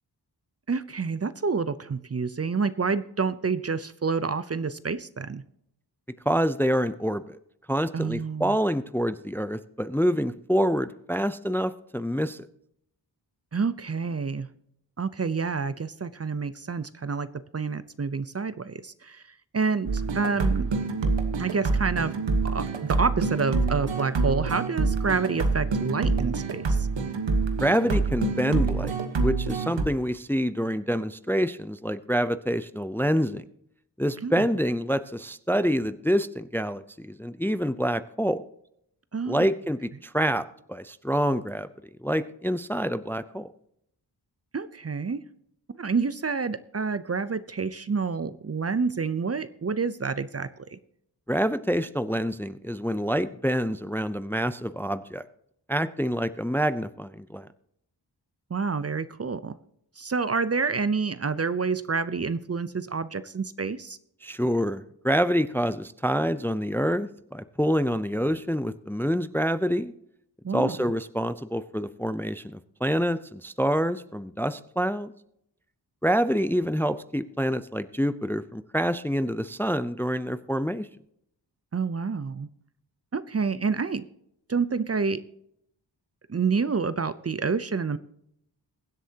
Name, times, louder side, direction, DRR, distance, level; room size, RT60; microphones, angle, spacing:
voice 1, 0.7-5.4 7.9-8.6 13.5-14.5 15.0-17.3 17.5-19.2 19.5-20.7 21.4-22.1 22.4-26.9 34.2-34.4 39.1-39.5 44.5-45.2 45.8-50.8 58.5-59.5 60.0-64.0 70.4-70.8 81.7-82.5 83.1-84.0 84.5-85.2 86.3-88.0, right 5 dB, 35° right, 15 dB, 0.6 m, -28 dB
voice 2, 6.3-7.4 7.7-12.5 27.6-33.4 34.0-38.4 39.3-41.7 42.0-43.5 51.3-55.2 55.7-57.5 64.2-69.9 70.5-75.1 76.0-80.9, equal, 5° left, 13 dB, 0.5 m, -27 dB
sound 1, 19.9-29.8, right 4 dB, 90° right, 1.3 m, -26 dB
22.0 x 7.9 x 2.9 m, 0.74 s
cardioid pair, 50°, 43 cm